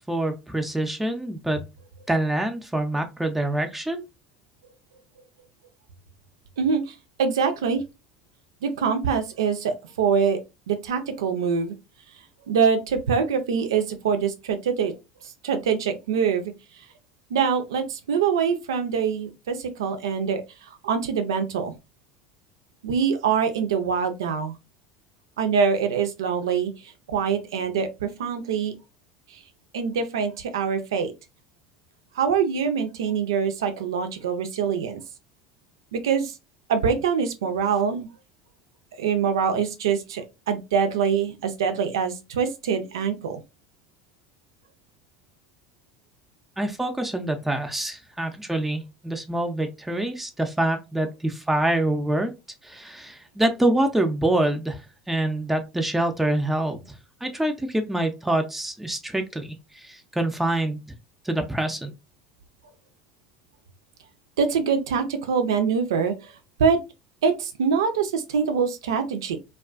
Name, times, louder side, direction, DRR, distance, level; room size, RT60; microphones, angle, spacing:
voice 1, 0.0-1.6 2.1-4.0 46.6-52.3 52.6-54.8 55.1-60.9 61.2-61.9, right 1 dB, 10° right, 0.5 m, -26 dB
voice 2, 7.2-7.8 8.6-10.4 10.7-11.7 12.5-14.9 15.4-16.5 17.3-20.4 20.8-21.7 22.8-24.5 25.4-26.7 27.1-28.7 29.7-31.1 32.2-35.0 35.9-36.3 36.7-38.1 39.0-43.4 64.4-66.1 66.6-66.8 67.2-69.4, right 6 dB, 80° right, 0.4 m, -24 dB
2.3 x 2.3 x 2.4 m
hypercardioid pair, 75°, 2 cm